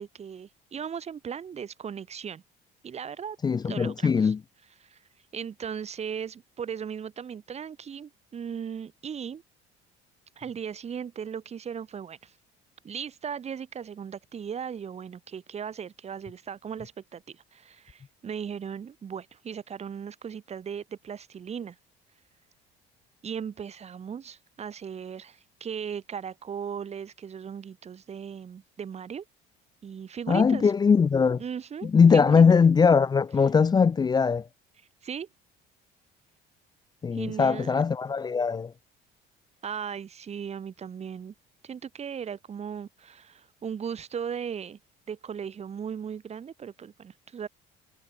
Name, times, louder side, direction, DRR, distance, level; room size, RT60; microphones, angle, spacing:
voice 1, 0.0-2.4 2.8-3.4 3.6-4.3 4.8-5.0 5.3-9.4 10.4-12.3 12.8-21.8 23.2-29.2 29.8-30.7 31.4-32.4 35.0-35.3 37.1-37.8 39.6-41.3 41.6-44.8 45.1-47.5, right 7 dB, 35° right, 3.0 m, -37 dB
voice 2, 3.4-4.4 30.3-31.4 31.8-34.5 37.0-38.7, left 5 dB, 20° left, 0.5 m, -21 dB
cardioid pair, 130°, 20 cm